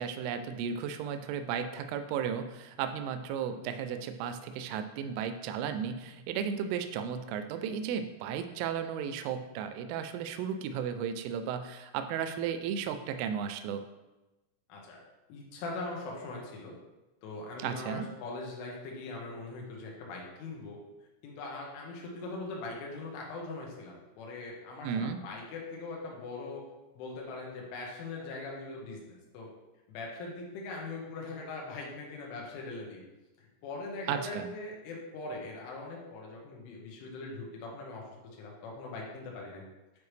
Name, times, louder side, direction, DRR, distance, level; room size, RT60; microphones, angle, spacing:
voice 1, 0.0-13.8 17.6-18.1 24.8-25.2 34.1-34.5, right 7 dB, 85° right, 8 dB, 3.1 m, -34 dB
voice 2, 15.3-16.8 17.2-20.8 21.2-26.6 27.0-29.5 29.9-33.0 33.6-38.0 38.4-39.6, left 3 dB, 80° left, -2 dB, 3.7 m, -41 dB
9.2 x 4.9 x 3.2 m, 1.1 s
omnidirectional pair, 5.6 m